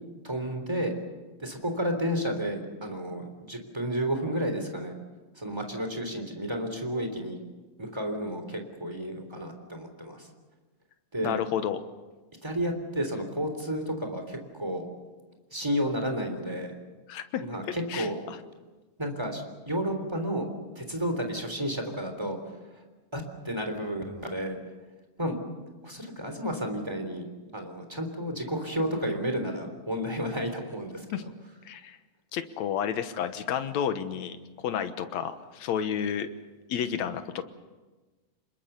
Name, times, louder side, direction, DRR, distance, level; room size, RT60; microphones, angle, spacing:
voice 1, 0.2-0.9 1.4-4.9 5.4-7.4 7.8-10.3 11.1-11.4 12.4-14.9 15.5-16.7 17.5-18.2 19.0-20.5 20.7-22.4 23.1-24.6 25.2-25.4 25.8-27.2 27.5-31.2, equal, 10° right, 4 dB, 3.0 m, -31 dB
voice 2, 11.2-11.8 17.1-17.4 17.9-18.4 31.1-31.2 31.7-32.0 32.3-34.4 34.6-36.3 36.7-37.4, left 8 dB, 65° left, 9 dB, 2.3 m, -31 dB
26.5 x 21.5 x 6.8 m, 1.2 s
omnidirectional pair, 3.8 m